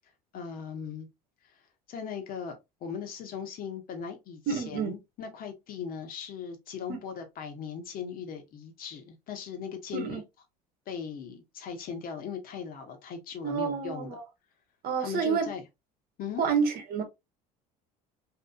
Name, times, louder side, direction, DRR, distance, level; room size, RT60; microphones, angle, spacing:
voice 1, 0.3-1.1 1.9-10.2 10.9-14.2 15.0-15.6 16.2-16.4, left 7 dB, 50° left, 0.9 m, -38 dB
voice 2, 4.5-5.0 6.9-7.0 9.9-10.2 13.4-14.2 14.8-15.5 16.4-17.0, right 6 dB, 50° right, 0.9 m, -29 dB
2.7 x 2.6 x 2.3 m
hypercardioid pair, 75°, 19 cm